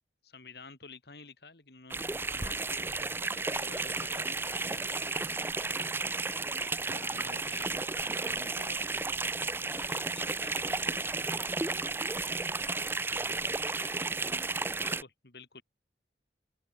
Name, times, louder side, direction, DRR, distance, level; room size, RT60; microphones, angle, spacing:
voice 1, 0.2-3.0 3.4-6.2 6.9-7.7 8.1-8.8 9.6-11.5 13.4-13.9 14.7-15.6, left 4 dB, 70° left, 2.4 m, -51 dB
sound 1, 1.9-15.0, right 3 dB, 10° right, 0.4 m, -33 dB
voice 2, 10.6-14.9, right 2 dB, 40° right, 4.6 m, -59 dB
head